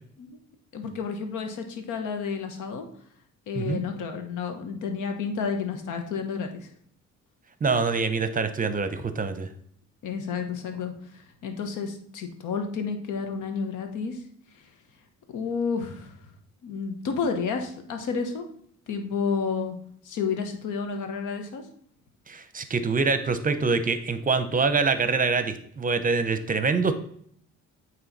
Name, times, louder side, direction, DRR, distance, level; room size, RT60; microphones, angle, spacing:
voice 1, 0.7-2.9 3.5-6.7 10.0-14.2 14.5-14.6 15.3-16.2 16.6-18.5 18.9-19.8 20.0-21.6, left 5 dB, 80° left, 6 dB, 1.1 m, -31 dB
voice 2, 7.6-9.5 22.3-26.9, right 4 dB, 30° right, 10 dB, 0.7 m, -25 dB
8.8 x 3.2 x 4.1 m, 0.62 s
cardioid pair, 90°, 30 cm